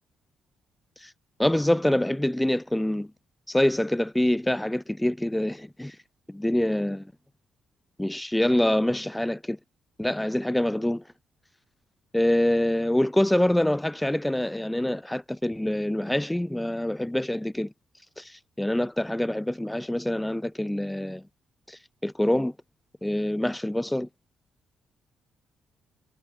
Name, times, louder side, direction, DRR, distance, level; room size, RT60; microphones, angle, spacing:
voice 1, 1.4-3.1 3.5-6.0 6.3-7.1 8.0-9.6 10.0-11.0 12.1-17.7 18.2-21.2 21.7-22.5 23.0-24.1, left 1 dB, 5° left, 0.5 m, -25 dB
cardioid pair, 90°, 0 cm